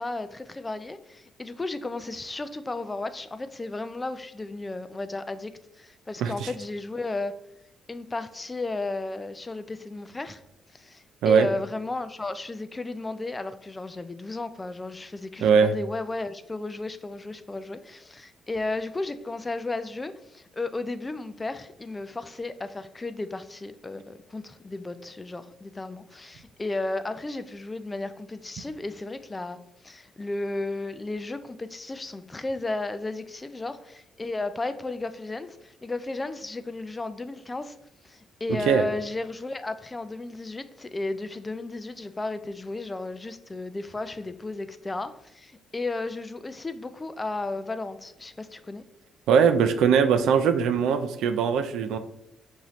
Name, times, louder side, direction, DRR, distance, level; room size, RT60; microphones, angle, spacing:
voice 1, 0.0-5.5 5.8-7.3 7.9-10.4 10.7-29.6 29.8-37.8 38.0-48.8, left 2 dB, 20° left, 0.3 m, -34 dB
voice 2, 6.2-6.5 11.2-11.5 15.4-15.7 38.7-38.8 49.3-52.0, right 6 dB, 85° right, 0.3 m, -21 dB
5.5 x 2.6 x 3.0 m
cardioid pair, 90°, 0 cm